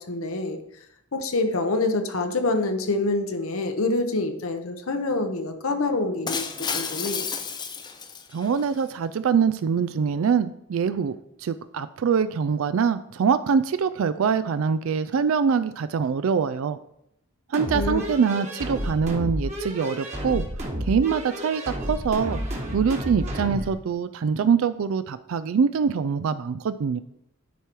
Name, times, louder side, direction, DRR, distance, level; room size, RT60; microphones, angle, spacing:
voice 1, 0.1-0.6 1.1-7.2 17.7-18.1, left 2 dB, 75° left, 6 dB, 0.9 m, -26 dB
Shatter, 6.3-8.7, left 5 dB, 20° left, 0.5 m, -31 dB
voice 2, 8.3-16.8 17.5-20.4 20.9-22.4 22.7-27.0, right 6 dB, 70° right, 13 dB, 0.3 m, -24 dB
Gravity Drop, 17.5-23.7, equal, 30° right, 1.4 m, -31 dB
10.0 x 4.7 x 4.5 m, 0.77 s
head